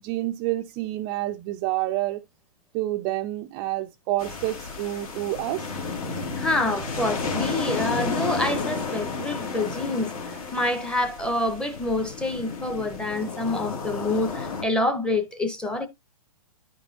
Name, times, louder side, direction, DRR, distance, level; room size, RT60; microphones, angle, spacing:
voice 1, 0.0-2.2 2.7-5.7, right 16 dB, 25° right, 0.3 m, -28 dB
sound 1, 4.2-14.6, left 4 dB, 70° left, 2.4 m, -32 dB
voice 2, 6.4-15.9, left 2 dB, 5° left, 0.6 m, -27 dB
10.5 x 5.3 x 2.6 m
hypercardioid pair, 140°, 19 cm